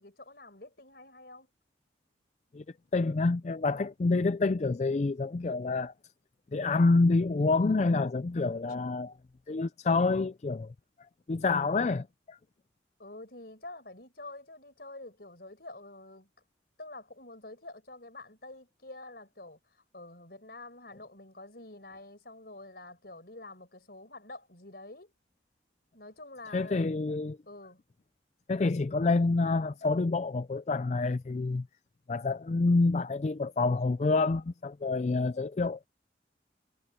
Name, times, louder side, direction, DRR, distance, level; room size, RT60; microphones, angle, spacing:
voice 1, 0.0-1.5 13.0-16.3 16.8-25.1 25.9-26.9 27.5-27.8, left 2 dB, 55° left, 5.3 m, -47 dB
voice 2, 2.9-5.9 6.5-9.1 9.5-10.7 11.3-12.4 26.5-27.4 28.5-31.7 32.1-35.9, left 3 dB, 40° left, 0.4 m, -27 dB
head